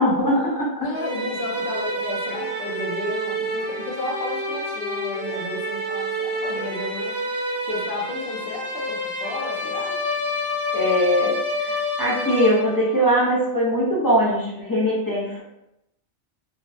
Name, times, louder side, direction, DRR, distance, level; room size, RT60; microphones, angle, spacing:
voice 1, 0.0-0.9 10.7-15.4, equal, 35° left, -6 dB, 0.3 m, -21 dB
voice 2, 0.8-7.2 7.7-10.0, left 2 dB, 55° left, -1 dB, 0.7 m, -32 dB
sound 1, 0.9-13.0, equal, 60° right, 0.8 m, -28 dB
2.5 x 2.0 x 2.5 m, 0.86 s
omnidirectional pair, 1.2 m